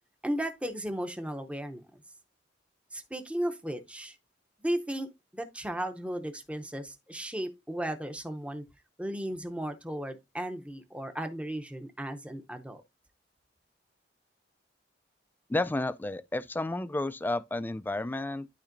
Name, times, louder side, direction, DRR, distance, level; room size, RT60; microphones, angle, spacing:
voice 1, 0.2-1.8 2.9-4.2 4.6-8.6 9.0-12.8, right 1 dB, 5° right, 0.7 m, -35 dB
voice 2, 15.5-18.5, left 2 dB, 10° left, 0.3 m, -31 dB
12.0 x 4.2 x 2.6 m
head